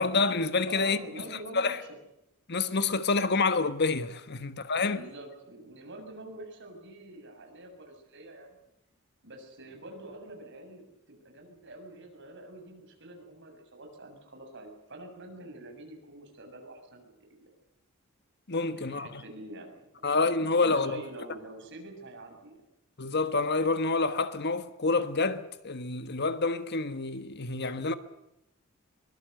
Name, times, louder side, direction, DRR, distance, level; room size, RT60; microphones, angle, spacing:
voice 1, 0.0-1.0 1.5-1.8 2.5-5.0 18.5-19.2 20.0-21.0 23.0-27.9, left 3 dB, 50° left, 1.3 m, -28 dB
voice 2, 0.7-1.9 4.3-4.4 4.9-8.6 9.2-17.5 18.7-19.8 20.6-22.6, right 1 dB, 60° right, 7.2 m, -46 dB
23.5 x 22.0 x 8.0 m
head